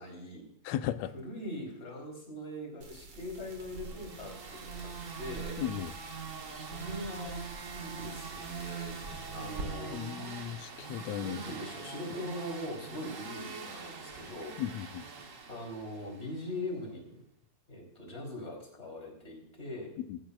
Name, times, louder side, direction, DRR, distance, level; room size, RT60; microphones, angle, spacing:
voice 1, 0.0-0.5 1.1-5.6 6.5-9.0 9.3-10.0 10.9-14.6 15.5-17.2 17.7-20.0, left 1 dB, 20° left, 0 dB, 3.7 m, -42 dB
voice 2, 0.7-1.1 5.6-5.9 9.9-11.4 14.6-15.0 20.0-20.2, left 11 dB, 75° left, 11 dB, 1.9 m, -36 dB
sound 1, 2.8-9.7, right 3 dB, 45° right, 2.1 m, -47 dB
sound 2, 3.6-16.5, right 5 dB, 75° right, 0.7 m, -43 dB
16.5 x 15.0 x 2.4 m, 0.71 s
omnidirectional pair, 3.3 m